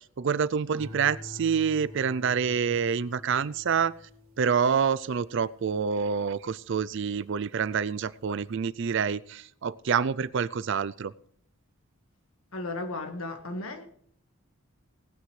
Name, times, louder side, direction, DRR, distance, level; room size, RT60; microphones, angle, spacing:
voice 1, 0.0-3.9 4.4-11.1, right 6 dB, 60° right, 0.4 m, -27 dB
sound 1, 0.7-7.3 7.7-8.2, left 1 dB, 75° right, 2.0 m, -48 dB
voice 2, 12.5-13.9, left 2 dB, 80° left, 1.7 m, -35 dB
19.0 x 9.4 x 3.3 m
head